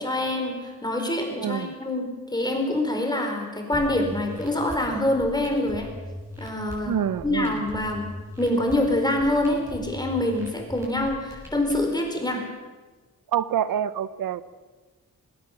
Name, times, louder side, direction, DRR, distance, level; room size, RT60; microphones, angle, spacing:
voice 1, 0.0-2.1 2.3-5.9 6.4-6.9 7.2-8.0 8.4-12.4, left 1 dB, 10° left, 3 dB, 4.5 m, -25 dB
voice 2, 1.3-1.7 6.9-7.6 13.3-14.4, right 9 dB, 85° right, 15 dB, 0.8 m, -26 dB
sound 1, 3.7-11.7, equal, 10° right, 7.4 m, -40 dB
20.0 x 18.0 x 7.4 m, 1.3 s
wide cardioid pair, 125°, 33 cm